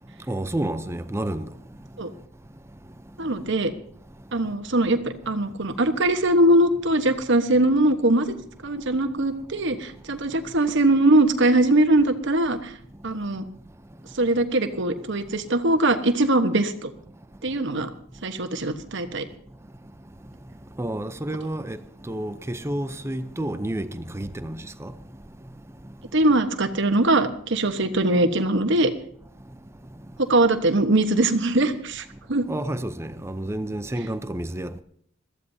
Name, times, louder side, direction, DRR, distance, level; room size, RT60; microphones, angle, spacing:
voice 1, 0.3-1.5 20.8-21.8 22.1-24.9 32.5-34.8, right 1 dB, 15° right, 0.6 m, -30 dB
voice 2, 3.2-3.7 4.3-8.3 8.6-12.7 13.0-13.5 14.1-16.9 17.4-17.9 18.2-19.2 26.1-28.9 30.2-32.5, right 1 dB, 60° right, 1.2 m, -21 dB
22.0 x 14.5 x 2.8 m
head